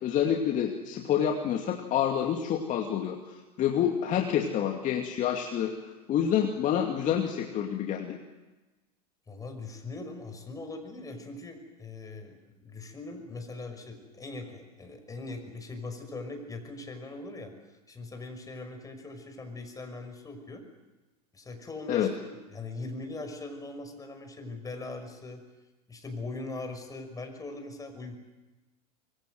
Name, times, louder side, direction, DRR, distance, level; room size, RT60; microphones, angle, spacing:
voice 1, 0.0-8.2 21.9-22.1, left 9 dB, 40° left, 2 dB, 2.5 m, -28 dB
voice 2, 9.3-20.6 21.3-25.4 25.9-28.2, left 3 dB, 15° left, 6 dB, 5.9 m, -41 dB
25.0 x 23.0 x 7.9 m, 1.1 s
hypercardioid pair, 95°, 21 cm